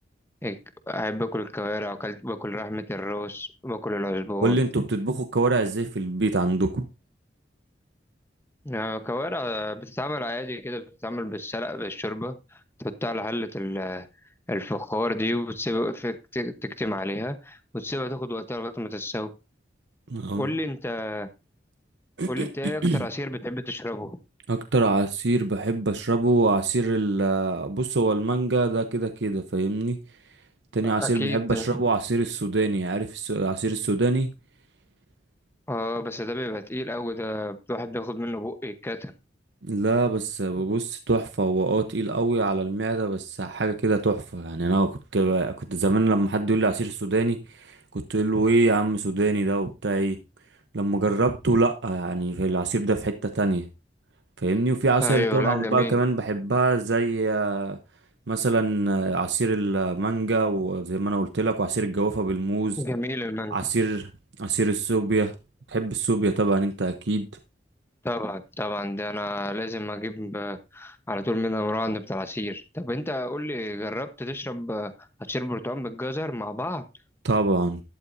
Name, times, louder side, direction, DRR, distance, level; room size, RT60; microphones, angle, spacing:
voice 1, 0.9-4.6 8.6-14.1 14.5-19.3 20.3-21.3 22.3-24.2 30.8-31.8 35.7-39.1 55.0-56.0 62.8-63.6 68.0-74.9 75.3-76.9, left 1 dB, 15° left, 1.0 m, -30 dB
voice 2, 4.4-6.9 20.1-20.5 22.2-23.1 24.5-30.0 30.7-34.3 39.6-50.2 50.7-53.7 54.4-57.8 58.3-62.8 63.5-64.1 64.4-65.3 65.7-67.3 77.2-77.8, right 3 dB, 85° right, 0.9 m, -24 dB
12.0 x 11.5 x 2.7 m
head